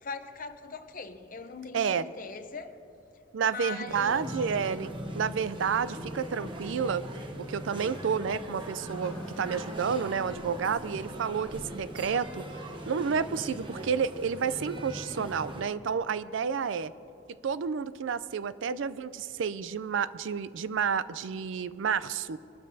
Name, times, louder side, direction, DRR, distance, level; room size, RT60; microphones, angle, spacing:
voice 1, 0.0-2.8 3.4-4.3 16.5-16.7, left 4 dB, 45° left, 8 dB, 0.7 m, -41 dB
voice 2, 1.7-2.0 3.3-7.1 7.4-12.4 12.9-16.9 17.4-22.4, right 6 dB, 70° right, 15 dB, 0.4 m, -30 dB
sound 1, 3.9-15.6, right 1 dB, 25° right, 0.9 m, -40 dB
Toilet flush, 6.1-15.3, equal, 5° left, 2.0 m, -53 dB
24.0 x 12.5 x 2.7 m, 2.7 s
head